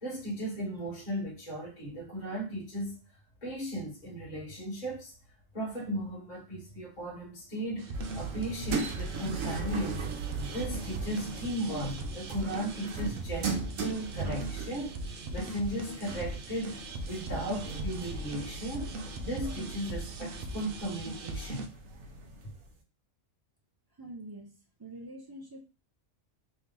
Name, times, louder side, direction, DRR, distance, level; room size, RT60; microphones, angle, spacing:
voice 1, 0.0-3.0 3.4-5.1 5.5-10.1 10.5-16.8 17.0-21.7, right 1 dB, 35° left, 1.6 m, -36 dB
sound 1, 7.8-21.7, right 2 dB, 55° right, 0.7 m, -40 dB
sound 2, 7.9-22.7, right 4 dB, 90° right, 1.1 m, -39 dB
voice 2, 24.0-24.5 24.8-25.6, right 1 dB, 40° right, 0.3 m, -45 dB
3.2 x 3.0 x 3.7 m
omnidirectional pair, 1.3 m